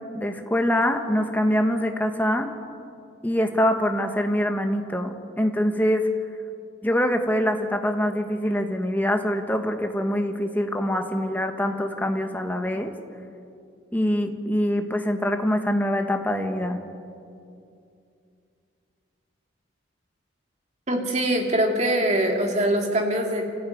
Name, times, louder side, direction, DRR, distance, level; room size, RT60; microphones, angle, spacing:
voice 1, 0.1-2.5 3.2-6.1 6.8-12.9 13.9-16.8, equal, 10° left, 5 dB, 1.4 m, -24 dB
voice 2, 20.9-23.4, right 1 dB, 35° right, 2 dB, 2.7 m, -23 dB
24.5 x 15.0 x 9.4 m, 2.5 s
head